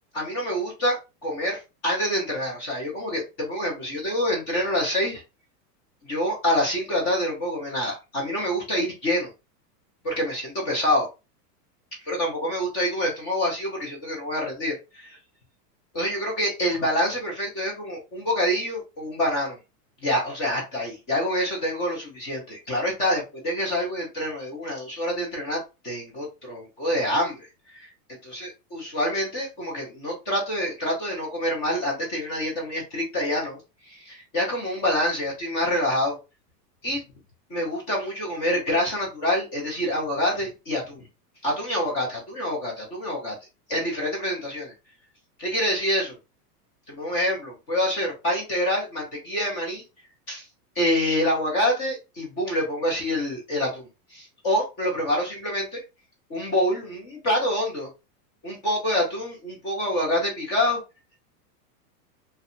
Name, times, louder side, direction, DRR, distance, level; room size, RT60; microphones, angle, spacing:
voice 1, 0.1-5.2 6.0-9.3 10.0-11.1 12.1-15.2 15.9-19.6 20.0-25.6 25.8-27.4 27.7-27.9 28.3-33.6 33.8-36.2 36.8-37.0 37.5-41.1 41.4-43.4 43.7-44.7 45.4-46.2 46.9-49.8 50.3-50.4 50.8-55.8 56.3-57.9 58.4-60.8, equal, 15° left, -2 dB, 0.3 m, -26 dB
2.6 x 2.1 x 2.5 m, 0.27 s
supercardioid pair, 145°, 48 cm